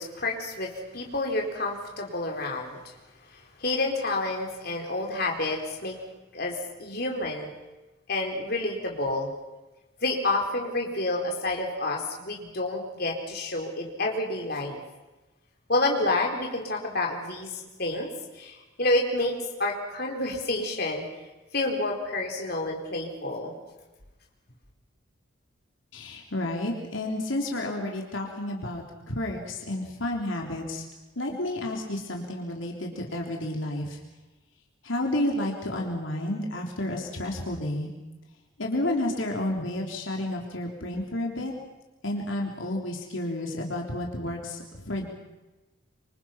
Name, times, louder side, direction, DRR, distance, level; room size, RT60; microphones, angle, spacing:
voice 1, 0.0-2.8 3.6-6.0 6.3-7.5 8.1-9.3 10.0-14.8 15.7-17.5 17.8-18.1 18.4-21.0 21.5-23.5, left 2 dB, 50° left, 1 dB, 4.4 m, -29 dB
voice 2, 25.9-30.8 31.2-34.0 34.8-37.9 38.6-41.5 42.0-45.1, left 1 dB, 75° left, 0 dB, 3.6 m, -31 dB
27.0 x 25.5 x 6.0 m, 1.1 s
head